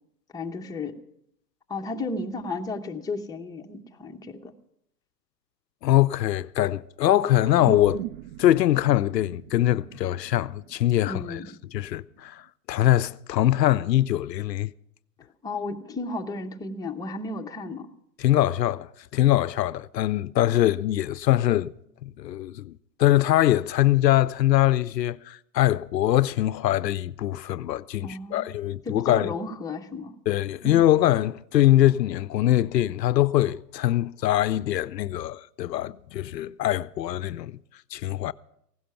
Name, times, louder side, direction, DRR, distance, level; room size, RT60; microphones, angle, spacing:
voice 1, 0.3-1.0 1.7-4.5 11.0-11.5 15.4-17.9 28.0-28.5 28.8-30.1, left 3 dB, 10° left, 0.9 m, -33 dB
voice 2, 5.8-8.0 8.4-11.4 11.7-12.4 12.7-14.7 18.2-21.7 22.0-22.7 23.0-29.3 30.3-37.6 37.9-38.3, left 13 dB, 85° left, 0.6 m, -23 dB
sound 1, 7.4-12.2, right 14 dB, 60° right, 0.7 m, -40 dB
16.0 x 11.5 x 5.8 m
hypercardioid pair, 115°, 49 cm